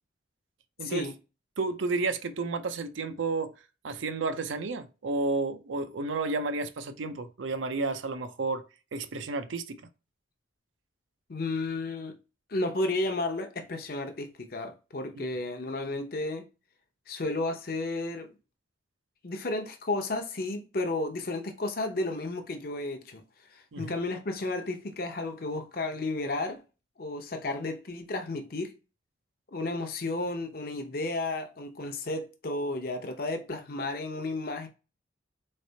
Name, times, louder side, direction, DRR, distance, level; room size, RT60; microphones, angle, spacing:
voice 1, 0.8-1.1 11.3-12.2 12.5-16.5 17.1-18.3 19.2-23.2 23.5-26.6 27.0-28.7 29.5-34.7, left 2 dB, 50° left, 0.7 m, -32 dB
voice 2, 1.6-3.5 3.8-8.6 8.9-9.8 15.2-15.3 23.7-23.9, right 3 dB, 80° right, 0.5 m, -31 dB
4.2 x 3.3 x 2.7 m
head